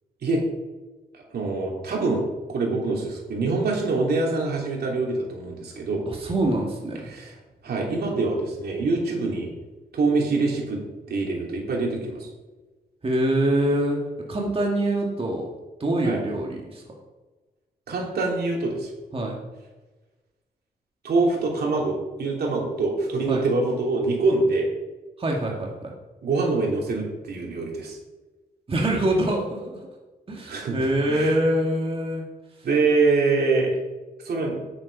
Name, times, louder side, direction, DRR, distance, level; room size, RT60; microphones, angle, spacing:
voice 1, 1.1-6.0 7.1-7.3 7.6-9.5 9.9-10.8 11.1-12.3 16.0-16.2 17.9-18.9 21.0-24.7 26.2-28.0 30.5-31.4 32.6-33.7 34.2-34.6, right 3 dB, 75° right, -1 dB, 3.1 m, -25 dB
voice 2, 6.1-7.1 13.0-14.0 14.3-15.5 15.8-16.8 19.1-19.4 23.3-23.5 25.2-25.9 28.7-29.8 30.3-32.2 32.6-32.7, right 1 dB, 35° right, -1 dB, 1.9 m, -24 dB
9.9 x 8.7 x 5.4 m, 1.2 s
wide cardioid pair, 110°, 16 cm